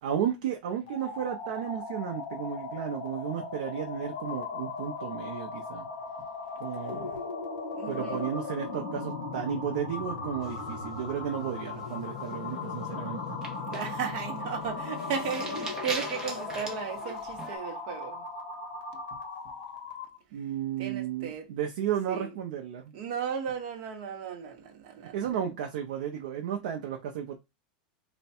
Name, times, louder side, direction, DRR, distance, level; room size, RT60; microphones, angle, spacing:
voice 1, 0.0-5.9 6.6-7.2 7.9-13.4 20.3-22.9 25.1-27.3, right 9 dB, 65° right, 0.6 m, -33 dB
sound 1, 0.9-20.2, left 4 dB, 50° left, 1.2 m, -37 dB
voice 2, 6.7-7.2 7.7-8.3 13.7-18.2 20.8-21.5 22.1-22.3 22.9-25.3, right 7 dB, 45° right, 0.9 m, -36 dB
sound 2, 10.4-11.3 11.7-12.0 12.3-12.6 13.2-17.6, right 3 dB, 10° right, 0.7 m, -41 dB
3.3 x 2.2 x 4.2 m
supercardioid pair, 165°, 5 cm